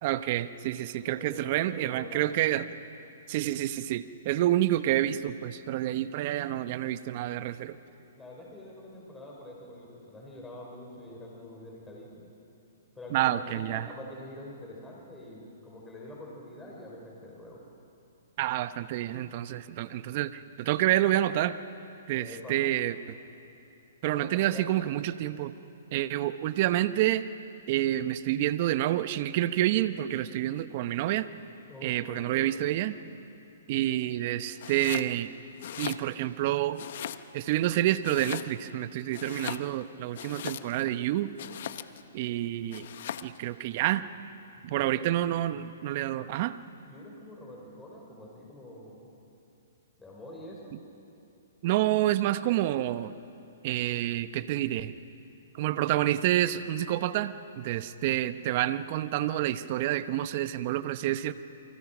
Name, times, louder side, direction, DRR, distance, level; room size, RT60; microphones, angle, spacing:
voice 1, 0.0-2.7 3.3-7.8 13.1-13.9 18.4-21.6 22.1-23.1 24.0-25.5 25.9-27.2 27.7-31.3 31.8-33.0 33.7-35.3 35.8-36.8 37.3-41.3 42.1-42.9 43.2-44.1 44.6-46.6 51.6-53.1 53.6-54.9 55.6-61.3, right 14 dB, 45° right, 12 dB, 1.0 m, -28 dB
voice 2, 0.9-2.5 7.9-12.2 12.9-17.6 22.1-22.6 24.0-24.8 31.7-32.5 44.6-45.1 46.8-49.1 50.0-50.7, left 1 dB, 10° left, -3 dB, 6.1 m, -45 dB
Domestic sounds home sounds, 34.6-35.1 35.5-36.4 36.8-37.5 38.0-38.8 39.1-40.9 41.4-42.1 42.7-43.4, left 10 dB, 60° left, 1.0 m, -39 dB
29.0 x 25.0 x 6.2 m, 2.7 s
hypercardioid pair, 135°, 0 cm